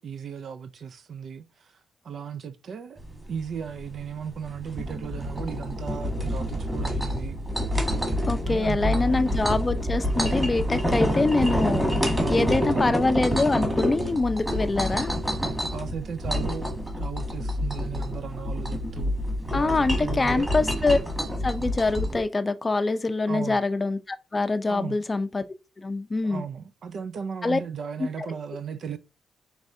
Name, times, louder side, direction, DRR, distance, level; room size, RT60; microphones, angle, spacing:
voice 1, 0.0-1.7 2.0-3.0 3.3-7.4 8.5-9.2 12.2-13.1 15.4-16.7 16.9-19.2 19.5-20.5 23.3-23.6 24.7-25.0 26.2-29.0, right 7 dB, 60° right, 0.4 m, -36 dB
sound 1, 3.0-22.2, equal, 10° right, 1.7 m, -28 dB
voice 2, 8.3-11.9 12.3-15.1 19.5-21.0 21.4-25.4 25.8-26.4 27.4-27.6 28.2-28.3, left 3 dB, 25° left, 0.5 m, -25 dB
4.7 x 3.3 x 2.6 m
supercardioid pair, 70°, 0 cm